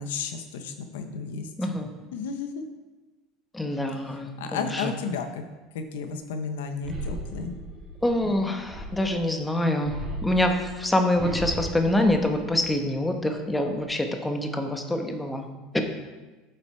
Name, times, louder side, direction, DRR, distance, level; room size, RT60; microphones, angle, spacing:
voice 1, 0.0-1.5 2.1-2.5 4.4-5.4 5.7-7.5, left 5 dB, 90° left, 7 dB, 0.9 m, -32 dB
voice 2, 1.6-1.9 3.5-4.9 8.0-10.0 10.2-15.5 15.7-15.8, left 1 dB, 10° left, 4 dB, 1.1 m, -25 dB
sound 1, 6.8-9.2 9.8-12.9 13.3-13.9, right 1 dB, 40° right, 2.7 m, -37 dB
8.3 x 7.9 x 4.4 m, 1.2 s
supercardioid pair, 115°, 0 cm